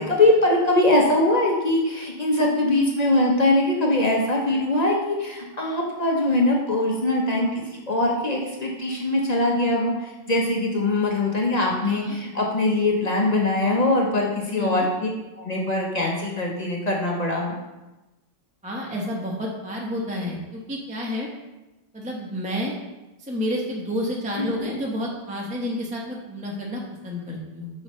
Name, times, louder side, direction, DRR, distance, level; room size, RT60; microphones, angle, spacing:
voice 1, 0.0-15.1 15.4-17.5 24.4-24.7, left 2 dB, 40° left, -1 dB, 0.6 m, -22 dB
voice 2, 11.8-12.2 14.6-14.9 18.6-21.3 21.9-22.7 23.2-27.7, left 1 dB, 5° right, -3 dB, 0.6 m, -30 dB
6.8 x 5.4 x 3.1 m, 1.0 s
omnidirectional pair, 1.9 m